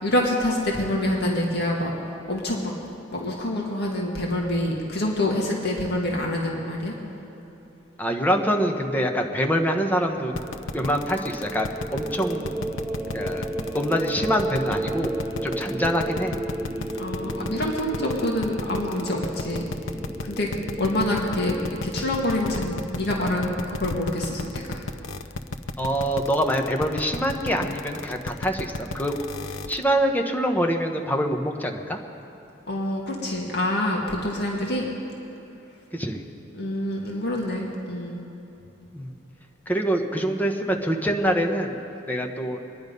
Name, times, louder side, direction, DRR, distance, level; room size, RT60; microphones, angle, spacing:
voice 1, 0.0-1.9 2.3-2.7 3.1-6.9 17.0-19.7 20.2-20.5 20.8-21.6 21.8-24.8 32.7-34.9 36.5-38.2, left 1 dB, 60° left, -1 dB, 1.9 m, -26 dB
voice 2, 8.0-10.3 10.7-12.5 13.1-13.5 13.7-15.2 15.4-16.4 25.8-29.1 29.7-32.0 35.9-36.2 38.9-39.2 39.7-41.8 42.1-42.6, equal, 10° left, 2 dB, 1.1 m, -25 dB
sound 1, 10.3-29.8, left 3 dB, 80° left, 0.6 m, -33 dB
sound 2, 10.4-22.1, right 1 dB, 10° right, 0.6 m, -33 dB
24.5 x 10.5 x 5.3 m, 2.9 s
head